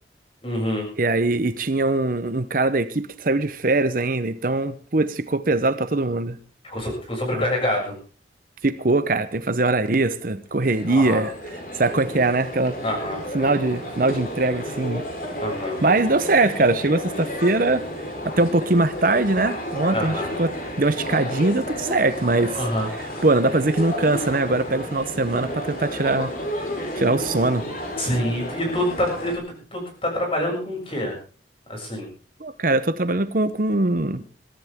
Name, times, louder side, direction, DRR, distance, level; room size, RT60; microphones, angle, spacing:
voice 1, 0.4-0.9 6.6-7.9 10.9-11.2 12.8-13.2 15.4-15.8 19.9-20.3 22.6-23.3 28.0-31.1 31.7-32.1, left 1 dB, 30° left, 7.0 m, -26 dB
voice 2, 1.0-6.4 7.3-7.5 8.6-11.3 11.8-12.8 13.3-15.0 15.8-17.8 18.4-22.6 23.0-26.3 26.9-27.7 32.4-34.2, right 2 dB, 45° right, 0.8 m, -22 dB
sound 1, 10.5-29.3, equal, 45° left, 4.3 m, -32 dB
22.5 x 14.0 x 3.6 m
head